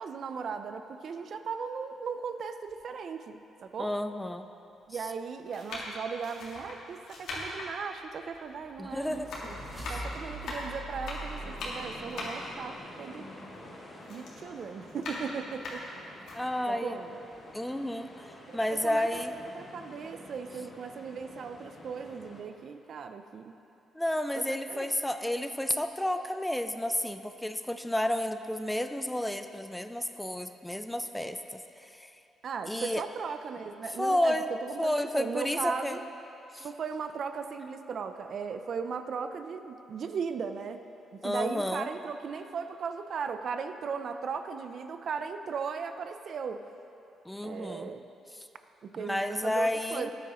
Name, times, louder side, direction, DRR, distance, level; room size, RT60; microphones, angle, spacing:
voice 1, 0.0-3.9 4.9-13.3 14.1-15.9 16.7-17.1 18.5-19.1 19.5-23.5 24.4-24.9 32.4-34.4 34.6-36.0 36.6-40.8 41.2-46.6 47.4-48.0 48.8-50.1, right 6 dB, 55° right, 8 dB, 0.5 m, -37 dB
sound 1, 2.7-2.8 3.7-3.8 4.7-5.0 5.5-8.9 9.1-13.7 14.0-16.4 16.9-17.0 17.3-18.3 18.6-18.8, left 2 dB, 75° left, 2.1 m, -41 dB
voice 2, 3.8-4.5 8.8-9.5 9.8-10.0 16.3-17.0 17.5-19.3 23.9-32.1 32.7-33.0 34.0-34.5 34.8-36.0 36.5-36.7 41.2-41.9 47.3-47.9 49.0-50.1, left 1 dB, 5° left, 9 dB, 0.4 m, -31 dB
sound 2, 8.2-12.5, right 1 dB, 30° right, 1.9 m, -43 dB
sound 3, 8.9-22.4, left 1 dB, 30° left, 1.8 m, -49 dB
13.0 x 9.1 x 3.0 m, 2.8 s
cardioid pair, 90°, 0 cm